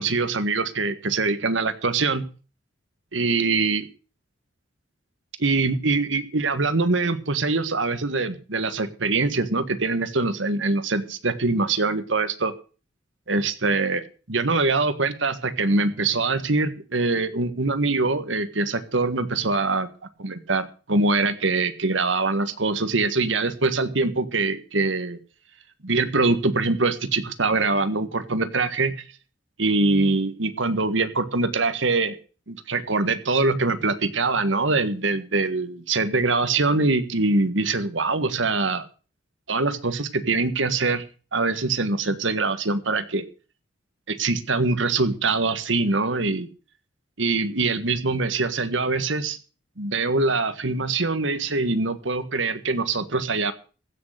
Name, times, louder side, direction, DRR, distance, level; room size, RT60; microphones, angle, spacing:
voice 1, 0.0-2.3 3.1-3.9 5.4-12.5 13.3-19.9 20.2-25.2 25.8-29.0 29.6-32.2 32.5-38.9 39.5-41.0 41.3-43.2 44.1-46.5 47.2-49.4 49.8-53.5, right 3 dB, 80° right, 11 dB, 1.7 m, -23 dB
15.5 x 6.7 x 8.1 m, 0.37 s
head